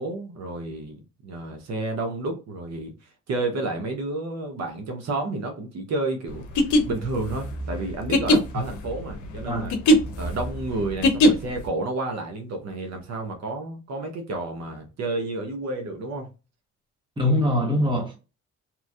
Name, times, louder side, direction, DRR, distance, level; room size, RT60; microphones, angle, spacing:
voice 1, 0.0-2.9 3.3-9.7 10.2-16.3, right 2 dB, 60° right, 0.8 m, -31 dB
sound 1, 6.4-11.7, equal, 70° left, 0.7 m, -20 dB
voice 2, 17.2-18.2, left 1 dB, 15° right, 1.1 m, -23 dB
2.9 x 2.5 x 2.4 m
cardioid pair, 90°, 30 cm